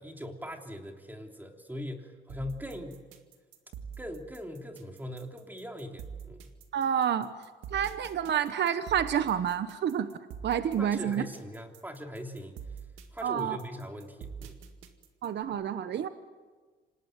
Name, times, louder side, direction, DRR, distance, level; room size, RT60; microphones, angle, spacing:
voice 1, 0.0-3.0 4.0-6.5 10.8-12.6 13.1-14.6, equal, 10° right, 3 dB, 3.3 m, -41 dB
sound 1, 2.3-15.4, right 7 dB, 90° right, 2.1 m, -45 dB
voice 2, 6.7-7.3 7.7-10.1 10.4-11.2 13.2-13.6 15.2-16.1, right 9 dB, 60° right, 11 dB, 1.1 m, -28 dB
26.5 x 19.0 x 9.1 m, 1.4 s
cardioid pair, 90°, 20 cm